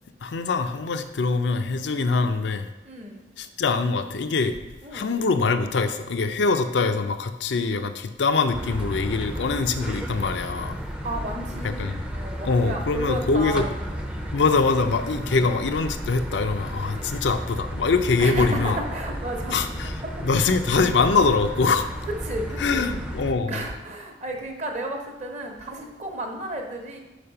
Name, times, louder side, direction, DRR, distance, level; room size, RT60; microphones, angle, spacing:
voice 1, 0.2-2.7 3.4-4.5 4.9-10.8 11.6-12.0 12.4-13.7 14.3-18.8 19.5-19.9 20.2-21.9 22.6-23.5, left 4 dB, 70° left, 9 dB, 0.5 m, -23 dB
voice 2, 2.8-3.3 4.8-5.2 11.0-14.3 15.2-15.4 16.9-17.1 18.2-20.2 22.2-22.9 23.4-27.0, right 1 dB, 40° right, 2 dB, 0.9 m, -33 dB
sound 1, 8.5-23.3, equal, 5° right, 0.5 m, -33 dB
5.1 x 4.7 x 5.7 m, 1.0 s
head